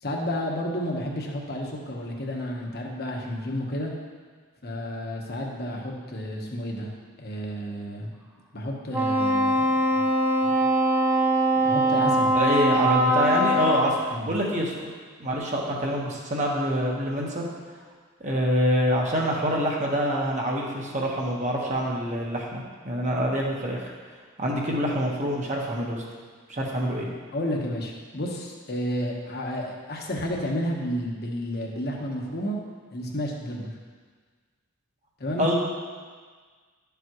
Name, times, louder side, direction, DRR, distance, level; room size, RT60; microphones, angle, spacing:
voice 1, 0.0-3.9 4.6-6.9 7.2-8.1 8.5-10.0 10.4-10.6 11.6-12.3 14.1-14.3 27.3-32.6 32.9-33.7 35.2-35.5, equal, 50° left, 0 dB, 1.2 m, -31 dB
Wind instrument woodwind instrument, 8.9-14.0, right 1 dB, 10° right, 0.6 m, -22 dB
voice 2, 12.3-14.9 15.2-17.5 18.2-23.8 24.4-26.0 26.5-27.1 35.4-35.5, equal, 35° right, -2 dB, 1.4 m, -26 dB
11.5 x 7.0 x 3.1 m, 1.5 s
head